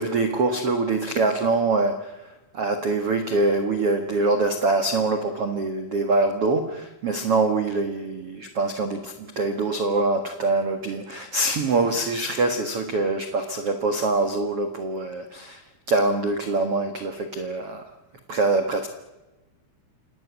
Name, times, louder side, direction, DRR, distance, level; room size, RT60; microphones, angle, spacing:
voice 1, 0.0-2.2 2.5-15.6 15.9-17.9 18.3-18.9, right 3 dB, 75° right, 6 dB, 1.3 m, -24 dB
28.0 x 19.0 x 9.8 m, 1.1 s
omnidirectional pair, 5.5 m